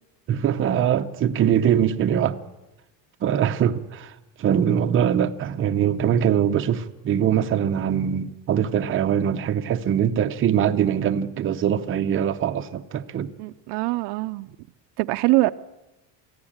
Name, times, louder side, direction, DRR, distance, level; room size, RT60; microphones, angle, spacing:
voice 1, 0.3-2.4 3.2-4.1 4.4-13.3, right 9 dB, 30° right, 0.7 m, -22 dB
voice 2, 13.4-14.5 15.0-15.5, right 20 dB, 70° right, 0.7 m, -23 dB
23.5 x 15.5 x 8.8 m
cardioid pair, 170°, 44 cm